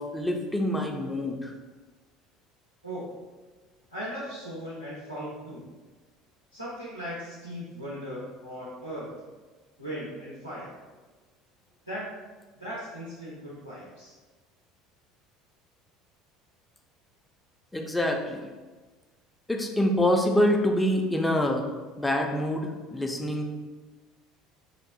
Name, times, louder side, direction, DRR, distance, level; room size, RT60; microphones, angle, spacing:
voice 1, 0.0-1.5 17.7-18.5 19.5-21.7 22.0-23.5, left 1 dB, 10° left, 2 dB, 0.3 m, -26 dB
voice 2, 3.9-5.6 6.5-9.1 9.8-10.7 11.9-12.2 12.6-14.1, equal, 90° left, -8 dB, 0.5 m, -38 dB
2.7 x 2.0 x 2.7 m, 1.3 s
figure-of-eight pair, 65°, 0 cm